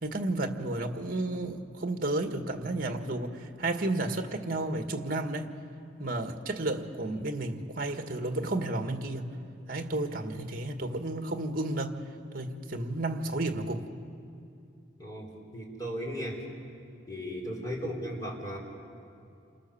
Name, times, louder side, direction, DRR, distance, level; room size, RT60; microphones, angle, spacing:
voice 1, 0.0-5.5 6.0-9.3 9.7-12.0 12.3-13.9, right 2 dB, 50° right, 1.8 m, -32 dB
voice 2, 15.0-16.5 17.1-18.6, equal, 20° left, 4.5 m, -36 dB
28.5 x 27.5 x 7.2 m
head